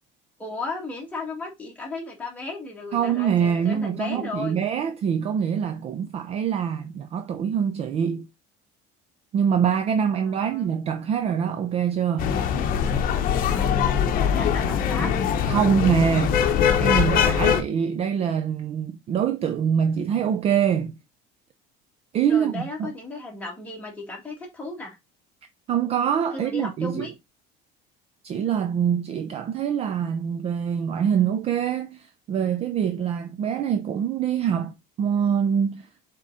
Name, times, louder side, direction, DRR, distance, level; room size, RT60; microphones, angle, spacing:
voice 1, 0.4-4.6 10.2-10.7 13.5-15.1 22.3-25.0 26.3-27.1, left 3 dB, 5° left, 2.2 m, -35 dB
voice 2, 2.9-8.3 9.3-12.3 15.5-16.4 16.8-21.0 22.1-22.9 25.7-27.1 28.2-35.9, right 8 dB, 30° right, 0.5 m, -24 dB
sound 1, 12.2-17.6, left 8 dB, 40° left, 1.0 m, -22 dB
7.2 x 3.8 x 4.1 m
cardioid pair, 180°, 21 cm